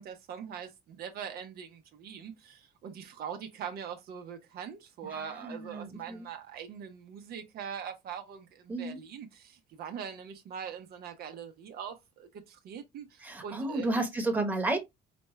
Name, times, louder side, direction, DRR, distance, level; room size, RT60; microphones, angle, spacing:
voice 1, 0.0-13.9, right 8 dB, 65° right, 0.8 m, -42 dB
voice 2, 5.1-6.3 8.7-9.0 13.2-14.8, right 2 dB, 10° right, 1.1 m, -32 dB
5.1 x 2.2 x 3.1 m
cardioid pair, 110°, 17 cm